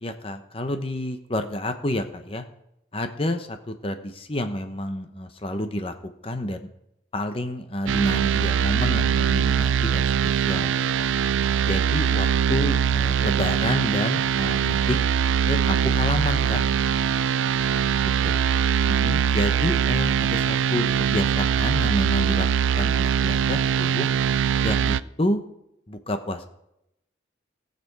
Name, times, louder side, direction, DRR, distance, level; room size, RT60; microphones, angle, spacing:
voice 1, 0.0-2.4 2.9-5.9 6.2-6.6 7.1-11.1 11.6-15.0 15.5-16.6 18.0-18.4 19.0-22.5 22.7-24.1 24.6-25.4 25.9-26.5, left 1 dB, 30° left, 7 dB, 0.9 m, -29 dB
sound 1, 7.9-25.0, right 8 dB, 80° right, 0.3 m, -22 dB
18.5 x 6.9 x 4.8 m, 0.81 s
head